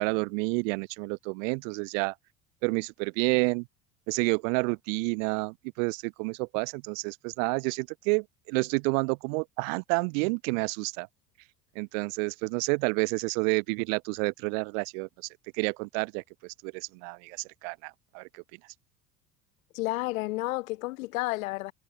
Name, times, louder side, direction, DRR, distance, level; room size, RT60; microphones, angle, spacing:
voice 1, 0.0-2.1 2.6-3.7 4.1-11.1 11.7-15.1 15.6-17.4 17.6-18.4, right 34 dB, 60° right, 1.2 m, -29 dB
voice 2, 19.7-21.7, left 21 dB, 65° left, 2.9 m, -31 dB
figure-of-eight pair, 65°, 43 cm